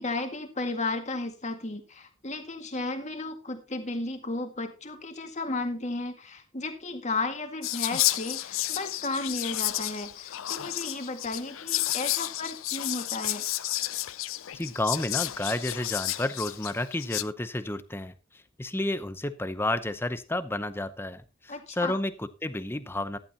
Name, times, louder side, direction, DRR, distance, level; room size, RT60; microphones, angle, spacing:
voice 1, 0.0-13.4 21.5-22.0, left 2 dB, 35° left, 5 dB, 1.9 m, -34 dB
Whispering, 7.6-17.2, left 15 dB, 70° left, 0.5 m, -31 dB
voice 2, 14.5-23.2, left 1 dB, 10° left, 12 dB, 0.7 m, -31 dB
14.5 x 11.5 x 2.9 m, 0.29 s
head